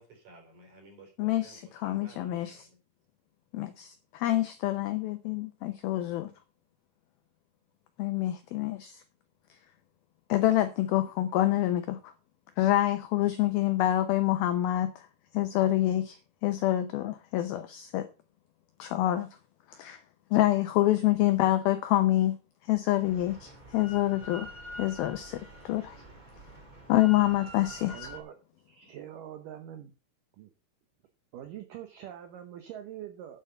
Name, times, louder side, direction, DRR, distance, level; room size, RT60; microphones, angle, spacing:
voice 1, 0.0-2.8, right 2 dB, 45° right, 5.3 m, -54 dB
voice 2, 1.2-2.7 3.5-6.3 8.0-9.0 10.3-12.1 12.6-15.1 15.3-16.2 16.4-18.1 18.8-19.3 19.7-20.0 20.3-22.4 22.7-24.5 24.8-26.0 26.9-28.1, left 14 dB, 80° left, 2.2 m, -27 dB
Drill, 23.0-28.2, equal, 20° right, 1.3 m, -46 dB
voice 3, 27.9-28.4 28.7-29.9 30.4-30.5 31.3-33.4, right 10 dB, 75° right, 1.9 m, -44 dB
9.7 x 7.5 x 5.7 m
omnidirectional pair, 5.2 m